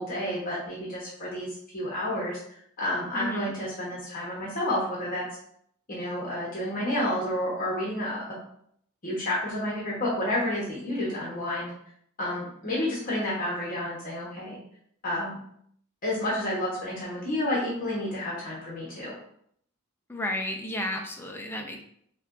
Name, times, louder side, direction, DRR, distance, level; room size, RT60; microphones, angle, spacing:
voice 1, 0.0-5.2 5.9-8.4 9.0-11.7 12.2-14.6 15.0-15.4 16.0-19.1, left 1 dB, 40° left, -5 dB, 1.0 m, -30 dB
voice 2, 3.1-3.5 20.1-21.8, left 1 dB, 10° left, 1 dB, 0.4 m, -32 dB
5.6 x 2.2 x 2.5 m, 0.67 s
head